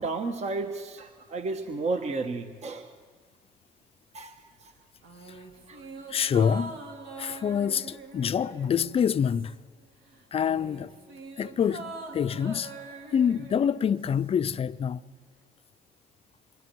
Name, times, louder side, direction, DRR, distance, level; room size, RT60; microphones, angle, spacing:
voice 1, 0.0-2.9 4.1-4.4 5.7-5.9, right 3 dB, 45° right, 1.3 m, -32 dB
sound 1, 5.0-9.8 10.1-14.4 14.7-14.8, right 3 dB, 75° right, 2.4 m, -44 dB
voice 2, 6.1-6.7 7.2-9.5 10.3-10.9 11.4-12.7 13.1-15.0, left 7 dB, 35° left, 0.5 m, -26 dB
27.0 x 23.0 x 4.7 m
supercardioid pair, 80°, 16 cm